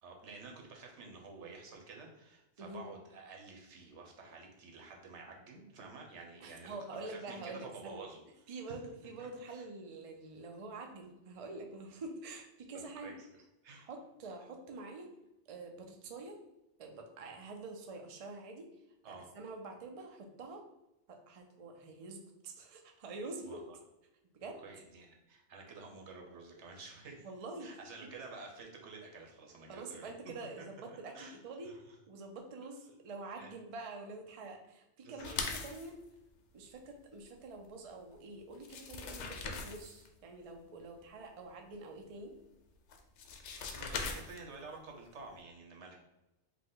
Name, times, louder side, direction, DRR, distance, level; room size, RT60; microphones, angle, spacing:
voice 1, 0.0-8.2 8.7-8.8 9.2-9.6 12.7-13.3 13.6-13.9 19.0-19.3 23.4-23.8 24.6-27.3 27.6-30.1 30.6-30.7 31.1-31.4 31.6-32.0 33.4-33.5 35.0-35.4 43.6-45.9, right 4 dB, 80° right, 1 dB, 1.1 m, -50 dB
voice 2, 6.4-8.0 8.5-13.2 13.7-15.1 15.5-16.4 16.8-18.7 19.1-20.6 21.1-23.6 24.3-24.6 27.2-27.7 29.7-31.7 32.1-36.0 36.5-42.3, right 3 dB, 45° right, 3 dB, 0.5 m, -46 dB
sound 1, 35.2-35.9 38.1-38.2 38.6-40.1 42.9-44.6, left 5 dB, 85° left, 0.9 m, -40 dB
4.9 x 2.2 x 3.8 m, 0.94 s
omnidirectional pair, 1.2 m